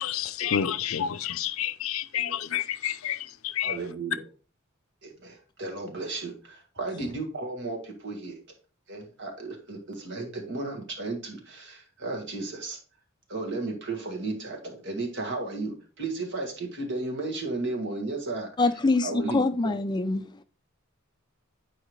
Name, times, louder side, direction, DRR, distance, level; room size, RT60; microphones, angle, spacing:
voice 1, 0.0-3.2 3.6-3.7, left 9 dB, 75° left, 0.5 m, -29 dB
voice 2, 3.6-4.2 5.0-8.4 8.9-12.8 13.3-18.5 19.0-19.7, right 3 dB, 60° right, 1.8 m, -34 dB
voice 3, 18.6-20.3, left 3 dB, 20° left, 0.3 m, -24 dB
8.7 x 4.8 x 3.2 m
head